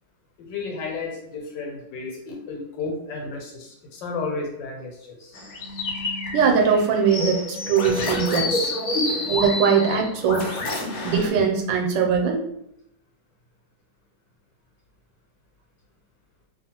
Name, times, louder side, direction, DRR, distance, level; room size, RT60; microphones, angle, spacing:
voice 1, 0.4-5.4, left 4 dB, 80° left, 0 dB, 1.4 m, -33 dB
sound 1, 5.3-11.3, left 2 dB, 65° left, 1.0 m, -28 dB
voice 2, 6.3-8.7 9.3-10.6 11.0-12.4, right 6 dB, 85° right, 2 dB, 1.3 m, -21 dB
2.8 x 2.3 x 2.8 m, 0.79 s
omnidirectional pair, 1.9 m